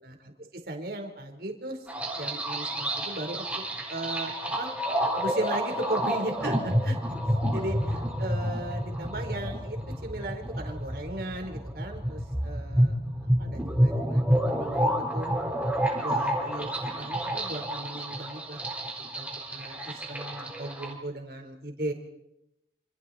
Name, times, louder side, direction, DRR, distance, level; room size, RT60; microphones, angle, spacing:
voice 1, 0.0-1.9 2.1-4.7 5.2-7.0 7.5-15.3 16.0-18.7 19.1-21.9, right 1 dB, 60° right, 4 dB, 4.2 m, -37 dB
sound 1, 1.9-20.9, equal, 10° right, 4.2 m, -29 dB
28.0 x 28.0 x 4.3 m, 0.86 s
head